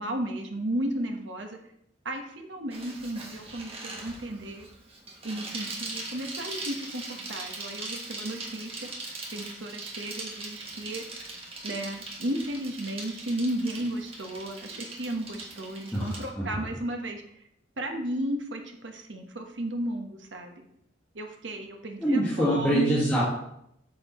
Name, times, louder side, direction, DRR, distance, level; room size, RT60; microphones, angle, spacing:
voice 1, 0.0-1.6 2.0-4.7 5.2-8.9 9.3-11.0 11.6-17.2 17.8-20.7 21.1-23.0, right 1 dB, 70° right, 3 dB, 1.2 m, -34 dB
Bicycle, 2.7-16.3, right 2 dB, 30° right, 1.4 m, -40 dB
voice 2, 15.9-16.6 22.0-23.2, right 1 dB, 10° left, -9 dB, 1.6 m, -25 dB
8.3 x 6.5 x 3.1 m, 0.75 s
head